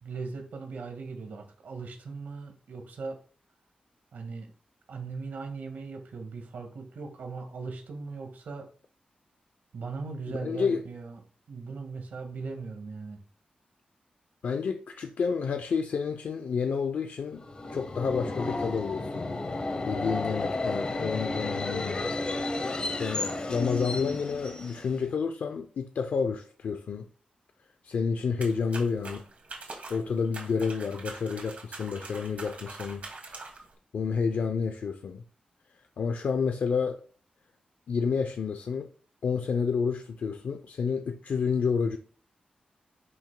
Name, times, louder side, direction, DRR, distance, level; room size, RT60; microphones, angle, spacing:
voice 1, 0.0-3.2 4.1-4.5 4.9-8.7 9.7-11.2 11.5-13.2, right 4 dB, 85° right, 1.8 m, -39 dB
voice 2, 10.4-10.8 14.4-17.4 17.7-19.3 19.9-22.1 23.0-27.1 27.8-29.2 29.9-33.0 33.9-35.2 36.0-37.0 37.9-38.9 39.2-42.0, left 5 dB, 70° left, 0.6 m, -29 dB
Subway metro underground, 17.4-25.1, left 2 dB, 35° left, 0.9 m, -32 dB
sound 1, 28.4-33.7, right 3 dB, 55° right, 2.2 m, -44 dB
10.5 x 6.0 x 2.3 m
wide cardioid pair, 155°, 3 cm